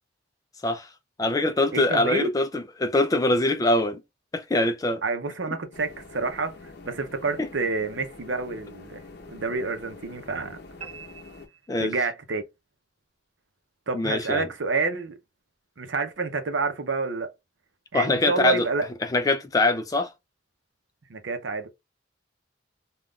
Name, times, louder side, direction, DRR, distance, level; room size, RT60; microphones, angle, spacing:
voice 1, 1.2-4.0 4.3-5.0 7.4-7.5 11.7-11.9 13.9-14.5 17.9-18.7 19.1-20.1, left 2 dB, 20° left, 0.4 m, -23 dB
voice 2, 1.7-2.3 5.0-6.6 6.8-9.0 9.3-10.6 11.8-12.4 13.9-15.2 15.8-17.3 17.9-18.9 21.1-21.7, right 4 dB, 70° right, 0.7 m, -28 dB
sound 1, 5.7-11.5, left 3 dB, 60° left, 0.7 m, -46 dB
sound 2, 10.8-12.3, right 7 dB, 40° right, 1.2 m, -45 dB
3.6 x 2.3 x 2.3 m
head